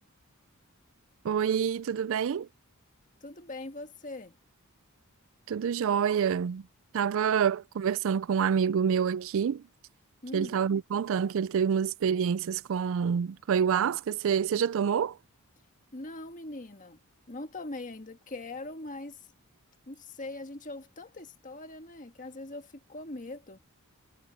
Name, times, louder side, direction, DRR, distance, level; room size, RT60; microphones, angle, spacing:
voice 1, 1.2-2.5 5.5-6.7 6.9-9.6 10.3-15.2, right 7 dB, 65° right, 0.4 m, -27 dB
voice 2, 3.2-4.3 10.2-10.6 15.9-17.0 17.3-19.3 19.9-23.6, left 2 dB, 35° left, 1.6 m, -41 dB
head